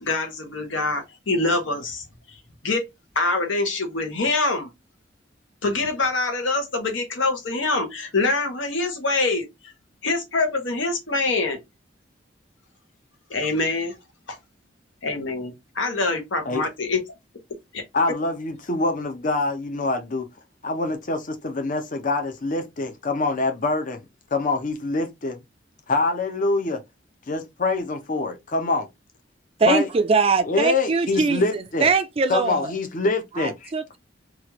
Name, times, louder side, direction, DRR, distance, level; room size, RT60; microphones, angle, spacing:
voice 1, 0.0-2.0 2.6-2.9 3.1-4.7 5.6-9.7 10.0-11.6 13.3-13.9 14.3-14.4 15.0-17.0 17.7-17.8, left 3 dB, 80° left, 1.0 m, -25 dB
voice 2, 17.9-20.3 20.6-24.0 24.3-25.4 25.9-26.8 27.3-28.9 29.7-29.9 30.4-31.9 32.3-33.7, left 3 dB, 45° left, 0.6 m, -25 dB
voice 3, 29.6-32.7 33.4-34.0, right 4 dB, 30° right, 0.3 m, -22 dB
3.1 x 2.4 x 2.9 m
head